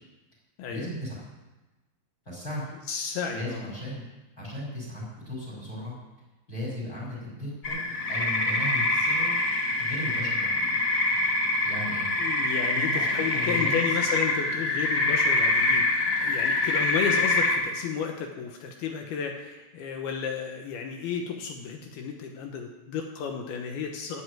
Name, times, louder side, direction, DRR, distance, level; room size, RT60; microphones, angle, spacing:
voice 1, 0.7-1.2 2.3-2.7 3.3-4.0 4.3-5.9 6.5-7.8 8.1-9.4 9.8-10.8 11.6-12.1 12.8-14.0, equal, 20° left, -4 dB, 5.3 m, -36 dB
voice 2, 2.9-3.6 12.2-24.2, left 6 dB, 75° left, 3 dB, 2.8 m, -33 dB
sound 1, 7.6-17.6, left 2 dB, 55° left, 0.9 m, -25 dB
12.5 x 7.9 x 9.1 m, 1.1 s
omnidirectional pair, 4.8 m